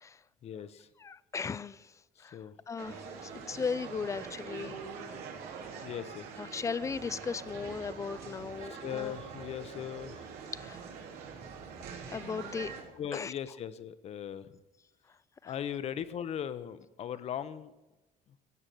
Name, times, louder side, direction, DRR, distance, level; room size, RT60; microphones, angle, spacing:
voice 1, 0.4-0.9 2.3-2.5 5.8-6.2 8.7-10.2 13.0-14.5 15.4-17.7, left 9 dB, 40° left, 14 dB, 0.8 m, -38 dB
voice 2, 1.0-1.9 2.2-2.4 2.7-4.8 5.8-5.9 6.4-9.1 10.5-10.8 12.1-12.7 13.1-13.3 15.4-15.5, left 5 dB, 20° left, 18 dB, 0.4 m, -37 dB
sound 1, 2.8-12.8, right 6 dB, 85° right, 3.5 m, -44 dB
16.5 x 8.8 x 7.8 m, 1.1 s
cardioid pair, 165°, 16 cm